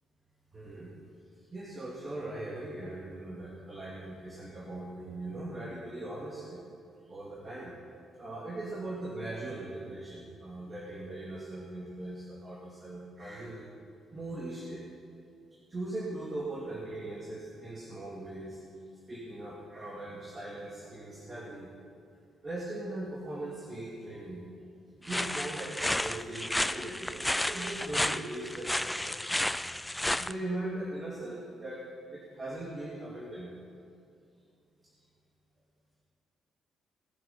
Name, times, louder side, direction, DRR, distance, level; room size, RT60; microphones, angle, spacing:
voice 1, 0.5-0.9 1.4-6.6 7.0-7.7 8.2-13.7 14.1-14.8 15.7-18.6 19.1-21.7 22.4-24.4 25.0-29.4 30.2-31.8 32.1-33.5, right 2 dB, 30° right, -5 dB, 2.3 m, -40 dB
sound 1, 25.1-30.3, left 1 dB, 5° left, 0.4 m, -32 dB
19.0 x 7.6 x 4.3 m, 2.6 s
cardioid pair, 90°, 0 cm